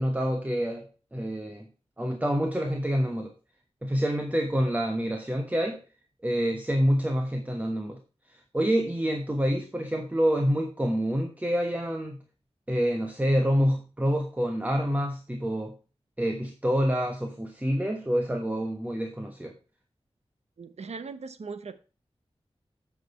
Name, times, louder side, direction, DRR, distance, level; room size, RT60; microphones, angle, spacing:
voice 1, 0.0-1.7 2.0-3.3 3.8-5.8 6.2-8.0 8.3-12.2 12.7-15.8 16.2-19.5, equal, 15° right, 4 dB, 1.2 m, -27 dB
voice 2, 20.6-21.8, right 4 dB, 90° right, 11 dB, 1.0 m, -39 dB
9.1 x 6.1 x 4.3 m, 0.35 s
wide cardioid pair, 90°, 11 cm